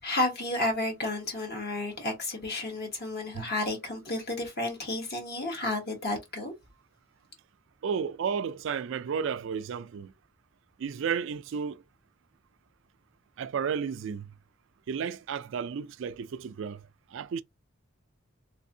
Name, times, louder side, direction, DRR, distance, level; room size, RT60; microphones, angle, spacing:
voice 1, 0.0-6.5, left 2 dB, 50° left, 1.3 m, -31 dB
voice 2, 7.8-10.1 10.8-11.8 13.4-14.3 14.9-16.8 17.1-17.4, right 6 dB, 65° right, 0.3 m, -32 dB
3.4 x 3.3 x 2.7 m
head